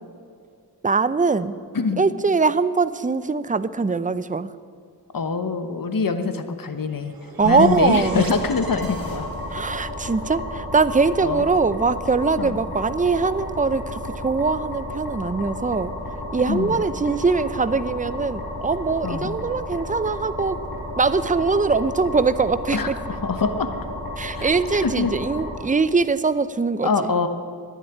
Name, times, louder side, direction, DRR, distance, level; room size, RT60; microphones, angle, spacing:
voice 1, 0.8-1.6 2.0-4.5 7.4-8.2 9.5-15.9 16.3-20.6 21.0-23.0 24.2-27.1, right 4 dB, 20° right, 14 dB, 0.6 m, -22 dB
voice 2, 5.1-7.1 7.4-9.3 11.2-11.4 12.4-12.6 16.5-16.8 19.0-19.4 22.7-23.7 24.3-24.5 24.8-25.1 26.8-27.3, left 4 dB, 55° left, 9 dB, 1.2 m, -24 dB
sound 1, 6.8-9.8, right 2 dB, 60° right, 2.5 m, -39 dB
sound 2, 7.4-25.6, left 1 dB, 75° left, 4.6 m, -33 dB
12.0 x 10.0 x 9.8 m, 2.2 s
cardioid pair, 45°, 39 cm